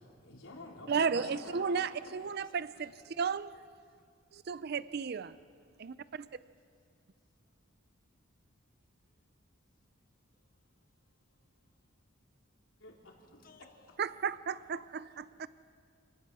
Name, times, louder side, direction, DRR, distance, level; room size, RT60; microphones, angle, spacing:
voice 1, 0.0-1.8 12.8-13.1, left 2 dB, 85° left, 3.8 m, -47 dB
voice 2, 0.9-3.6 4.3-5.4 5.8-6.3 14.0-15.5, right 6 dB, 50° right, 0.5 m, -34 dB
voice 3, 2.2-3.2 13.1-14.0, left 4 dB, 45° left, 1.5 m, -63 dB
28.0 x 18.5 x 6.2 m
head